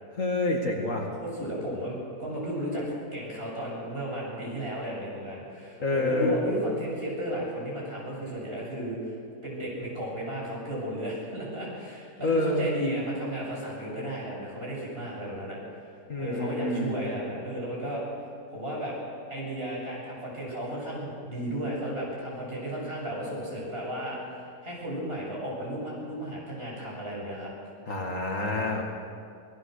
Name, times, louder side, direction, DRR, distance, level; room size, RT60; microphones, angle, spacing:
voice 1, 0.1-1.1 5.8-6.4 12.2-12.7 16.1-17.0 27.9-28.8, left 2 dB, 50° left, 1 dB, 2.5 m, -27 dB
voice 2, 1.2-2.8 3.1-9.2 9.4-15.6 16.2-18.0 18.5-19.0 19.3-27.5, equal, 35° right, -4 dB, 8.3 m, -34 dB
27.5 x 18.0 x 6.7 m, 2.3 s
omnidirectional pair, 1.7 m